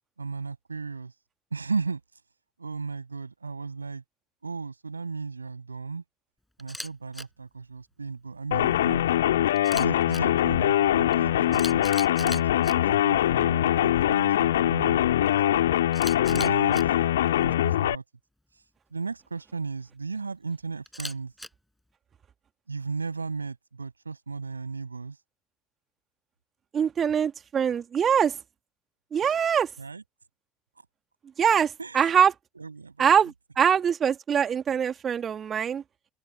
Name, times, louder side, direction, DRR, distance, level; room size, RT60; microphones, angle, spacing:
voice 1, 0.2-1.1 1.5-2.0 2.6-4.0 4.4-6.0 6.6-9.0 9.7-15.7 16.3-16.9 17.4-18.0 18.9-21.3 22.7-25.2 29.2-29.3 29.8-30.0 31.8-32.1 32.5-33.1, right 4 dB, 80° right, 6.3 m, -35 dB
Camera, 6.6-6.9 7.1-7.2 9.6-10.2 11.1-11.2 11.5-12.7 15.9-16.8 20.9-21.5, left 1 dB, 5° left, 6.5 m, -37 dB
sound 1, 8.5-17.9, left 12 dB, 70° left, 3.2 m, -23 dB
voice 2, 26.7-28.4 29.1-29.7 31.4-32.3 33.0-35.8, right 8 dB, 30° right, 2.1 m, -23 dB
open air
figure-of-eight pair, 70°, 0 cm